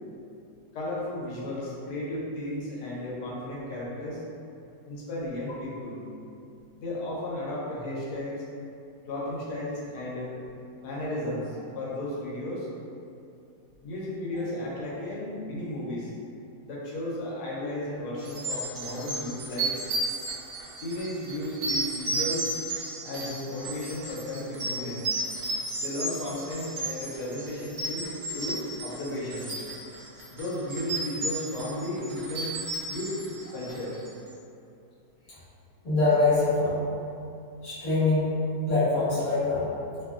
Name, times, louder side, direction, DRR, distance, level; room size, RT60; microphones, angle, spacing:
voice 1, 0.7-4.2 4.8-6.0 6.8-8.4 9.1-10.3 10.8-12.7 13.8-16.1 16.6-19.7 20.8-22.5 23.0-25.0 25.8-29.6 30.3-32.5 32.9-33.1 33.5-34.0, left 1 dB, 90° left, -5 dB, 1.2 m, -34 dB
sound 1, 18.2-34.1, right 2 dB, 60° right, 0.7 m, -33 dB
voice 2, 35.8-36.8 37.6-38.3 38.7-39.7, left 3 dB, 25° left, -12 dB, 0.8 m, -24 dB
2.9 x 2.4 x 2.4 m, 2.5 s
omnidirectional pair, 1.7 m